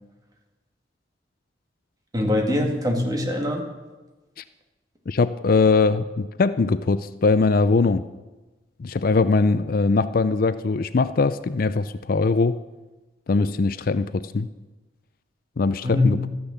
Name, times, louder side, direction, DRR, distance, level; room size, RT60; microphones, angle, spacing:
voice 1, 2.1-3.6 15.8-16.3, left 1 dB, 20° right, 1 dB, 2.2 m, -23 dB
voice 2, 5.1-8.0 8.8-12.6 13.3-14.5 15.6-16.3, left 4 dB, 50° left, 13 dB, 0.4 m, -21 dB
13.5 x 10.5 x 7.2 m, 1.1 s
head